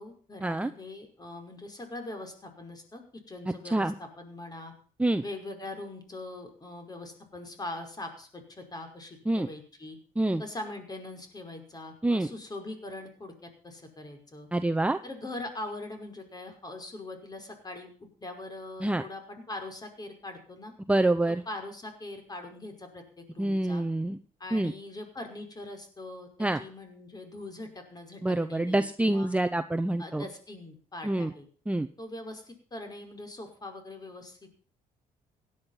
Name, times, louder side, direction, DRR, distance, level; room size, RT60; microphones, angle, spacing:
voice 1, 0.0-4.7 5.2-10.0 10.4-14.5 15.0-20.7 21.3-23.8 24.4-26.3 26.5-29.3 30.0-31.5 32.0-34.6, left 2 dB, 25° left, 5 dB, 5.6 m, -42 dB
voice 2, 14.5-15.0 18.8-19.0 20.9-21.4 23.4-24.2 24.5-24.7 26.4-26.6 28.2-30.3 31.0-31.3 31.7-31.9, right 1 dB, 10° right, 8 dB, 0.9 m, -26 dB
17.0 x 11.0 x 5.7 m, 0.42 s
cardioid pair, 90°, 15 cm